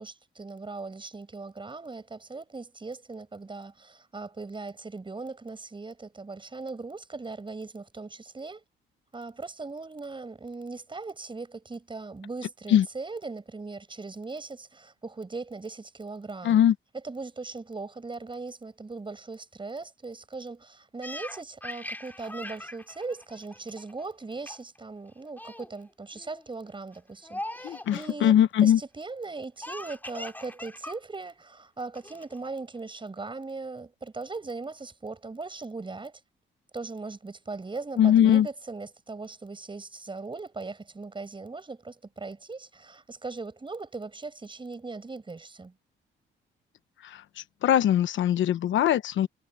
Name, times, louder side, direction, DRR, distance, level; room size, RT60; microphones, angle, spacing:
voice 1, 0.0-8.6 9.1-16.6 17.0-28.3 28.6-36.2 36.7-45.7, right 3 dB, 25° right, 7.1 m, -39 dB
voice 2, 16.4-16.7 27.6-28.8 38.0-38.5 47.0-49.3, left 10 dB, 75° left, 1.2 m, -21 dB
Laughter, 21.0-24.1 24.5-24.8 25.1-25.7 26.2-26.5 27.2-28.2 29.6-31.0 31.3-31.4 31.9-32.5, left 1 dB, 10° left, 4.6 m, -41 dB
cardioid pair, 90°, 20 cm